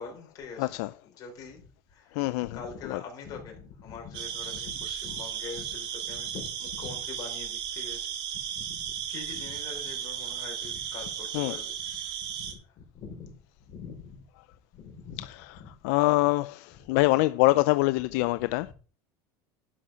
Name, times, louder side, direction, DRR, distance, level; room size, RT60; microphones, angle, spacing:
voice 1, 0.0-1.6 1.9-12.0 12.4-13.3 13.7-14.2 14.7-15.7 16.7-16.9 18.1-18.7, left 5 dB, 45° left, 4.2 m, -44 dB
voice 2, 0.6-0.9 2.2-2.6 2.9-3.0 11.3-11.5 15.8-18.7, left 20 dB, 75° left, 0.4 m, -24 dB
sound 1, 4.1-12.5, right 9 dB, 60° right, 2.3 m, -35 dB
11.0 x 5.6 x 5.7 m
cardioid pair, 140°, 9 cm